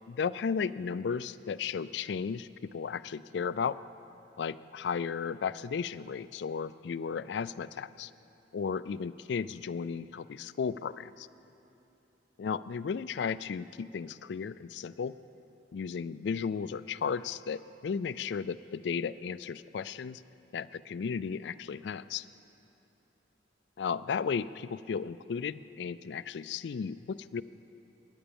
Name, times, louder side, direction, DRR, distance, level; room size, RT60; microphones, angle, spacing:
voice 1, 0.1-3.8 4.4-8.1 8.5-11.3 12.4-15.2 15.7-20.2 20.5-22.3 23.8-27.4, left 6 dB, 70° left, 14 dB, 0.4 m, -34 dB
20.5 x 9.9 x 7.0 m, 2.8 s
head